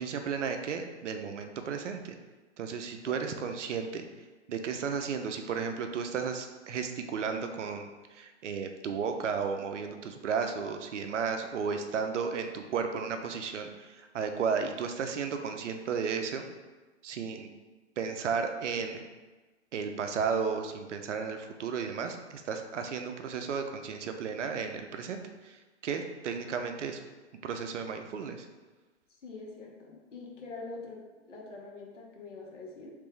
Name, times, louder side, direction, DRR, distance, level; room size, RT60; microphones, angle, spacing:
voice 1, 0.0-2.2 2.6-4.1 4.5-16.4 17.0-17.5 18.0-19.0 19.7-25.6 25.8-27.0 27.4-28.5, right 6 dB, 80° right, 6 dB, 0.5 m, -34 dB
voice 2, 29.2-32.9, left 3 dB, 85° left, -2 dB, 1.0 m, -44 dB
3.4 x 3.2 x 3.2 m, 1.2 s
hypercardioid pair, 125°, 36 cm